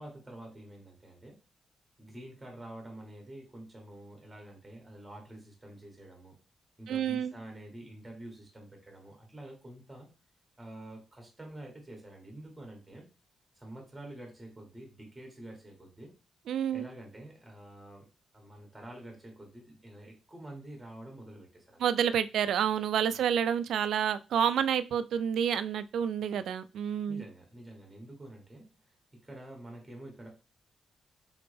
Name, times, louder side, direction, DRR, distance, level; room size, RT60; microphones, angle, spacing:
voice 1, 0.0-1.3 2.0-6.3 6.8-10.1 10.6-13.0 13.5-16.1 16.7-18.1 18.3-21.8 23.1-23.2 27.1-28.6 29.1-30.3, right 1 dB, 5° right, 1 dB, 1.5 m, -47 dB
voice 2, 6.9-7.3 16.5-16.9 21.8-27.2, right 8 dB, 80° right, 13 dB, 0.3 m, -29 dB
3.9 x 3.5 x 3.3 m, 0.31 s
wide cardioid pair, 150°, 0 cm